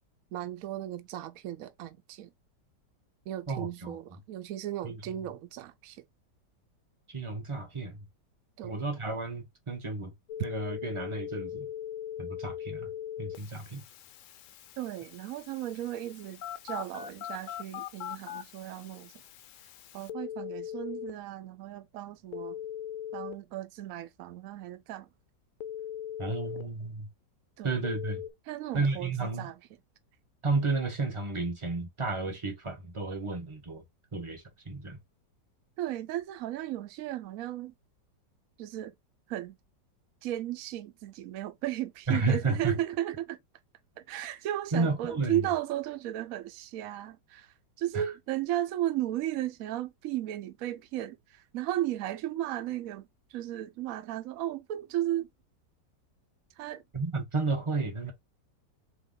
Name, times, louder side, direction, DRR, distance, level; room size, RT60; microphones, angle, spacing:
voice 1, 0.3-2.3 3.3-6.0 8.6-8.8 14.8-19.1 19.9-22.6 23.1-25.1 27.6-27.8 28.5-29.6 35.8-37.7 38.6-38.9 39.3-39.6 40.2-43.4 44.1-55.3 56.6-56.8, right 13 dB, 65° right, 0.9 m, -35 dB
voice 2, 3.5-4.0 4.8-5.0 7.1-8.0 8.6-10.1 10.4-11.7 12.2-12.9 13.2-13.8 26.2-27.1 27.6-28.2 28.7-29.5 30.4-33.8 34.1-35.0 42.1-42.8 44.7-45.4 47.9-48.0 56.9-58.1, right 3 dB, 25° right, 0.7 m, -32 dB
Telephone, 10.3-21.1 22.3-23.3 25.6-26.6 27.8-28.3, left 10 dB, 75° left, 0.7 m, -40 dB
3.9 x 2.9 x 3.8 m
omnidirectional pair, 1.9 m